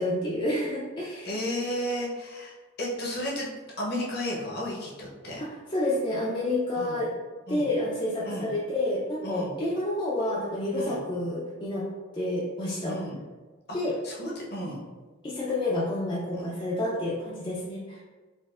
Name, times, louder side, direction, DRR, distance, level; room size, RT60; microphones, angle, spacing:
voice 1, 0.0-1.3 5.4-7.1 7.5-11.9 12.1-13.0 13.7-14.0 15.2-18.0, left 1 dB, 25° left, -6 dB, 0.4 m, -29 dB
voice 2, 1.2-2.5 2.8-3.5 3.8-5.4 6.8-7.0 7.5-7.7 8.2-8.5 9.2-9.5 10.7-11.0 12.9-13.2 14.0-14.8 16.4-16.5, equal, 50° left, -3 dB, 0.8 m, -33 dB
4.1 x 2.5 x 2.4 m, 1.3 s
head